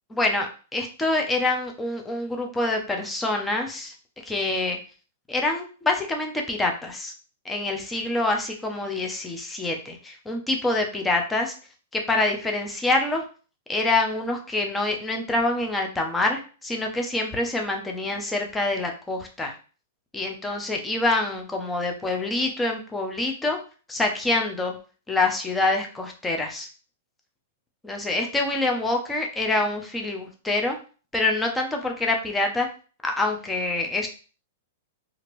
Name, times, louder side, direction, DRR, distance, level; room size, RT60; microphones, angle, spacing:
voice 1, 0.1-3.9 4.2-4.8 5.3-7.1 7.4-11.5 11.9-13.2 13.7-19.5 20.1-23.6 23.9-24.7 25.1-26.7 27.8-30.8 31.1-32.7 33.0-34.1, left 2 dB, 10° left, 2 dB, 0.6 m, -26 dB
2.8 x 2.5 x 3.0 m, 0.37 s
hypercardioid pair, 140°, 0 cm